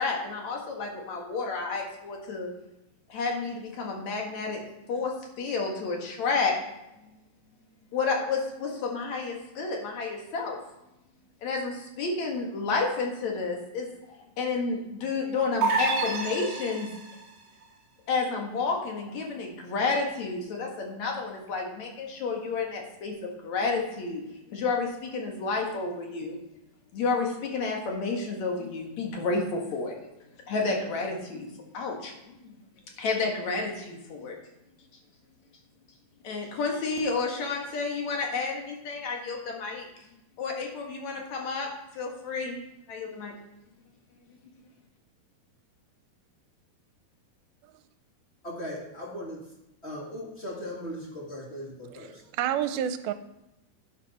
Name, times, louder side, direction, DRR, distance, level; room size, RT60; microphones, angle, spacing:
voice 1, 0.0-2.5 3.1-4.6 4.9-6.5 7.9-10.6 11.4-13.9 14.4-16.9 18.1-24.2 24.5-26.4 26.9-30.0 30.5-31.5 31.7-32.5 33.0-34.4 36.2-39.9 40.4-42.6 42.9-43.3, left 4 dB, 55° left, 1 dB, 2.7 m, -30 dB
sound 1, 15.6-17.2, right 4 dB, 40° right, 1.9 m, -28 dB
voice 2, 48.4-49.4 49.8-52.2, equal, 30° left, -2 dB, 1.1 m, -38 dB
voice 3, 52.0-53.1, right 10 dB, 80° right, 10 dB, 2.5 m, -29 dB
11.0 x 10.0 x 4.2 m, 0.90 s
omnidirectional pair, 4.4 m